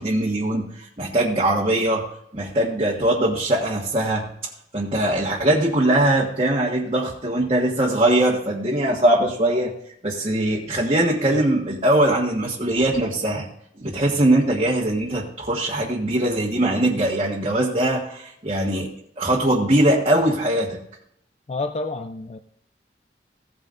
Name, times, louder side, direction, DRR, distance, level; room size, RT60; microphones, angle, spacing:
voice 1, 0.0-2.0 2.3-4.3 4.7-9.7 10.0-13.5 13.8-20.8, right 1 dB, 35° right, -4 dB, 1.4 m, -21 dB
voice 2, 21.5-22.4, left 3 dB, 35° left, 7 dB, 0.5 m, -29 dB
16.5 x 9.1 x 2.6 m, 0.72 s
head